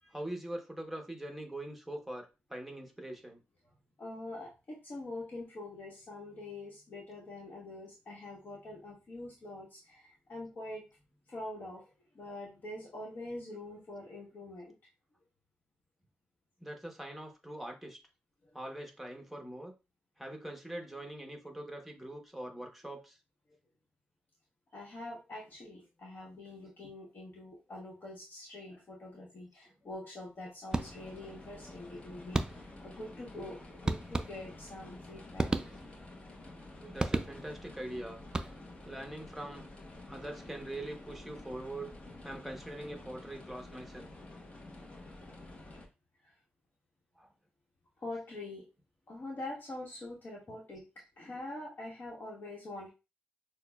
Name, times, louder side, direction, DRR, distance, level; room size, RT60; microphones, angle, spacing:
voice 1, 0.1-3.4 16.6-18.0 18.5-19.7 20.2-23.2 36.8-38.2 38.8-39.7 40.1-41.9 42.2-44.1 47.2-47.3, right 1 dB, 5° right, 2 dB, 1.0 m, -43 dB
voice 2, 4.0-10.8 11.3-14.7 18.4-18.5 24.7-35.8 46.2-46.4 48.0-48.7 49.1-50.8 51.2-52.9, left 2 dB, 55° left, -4 dB, 1.1 m, -45 dB
sound 1, 30.7-45.9, left 2 dB, 35° left, 0.9 m, -50 dB
sound 2, 30.7-31.3 32.3-32.9 33.9-34.7 35.4-36.1 37.0-37.7 38.2-38.9, right 2 dB, 20° right, 0.3 m, -34 dB
6.2 x 2.2 x 2.3 m, 0.27 s
wide cardioid pair, 105°, 4 cm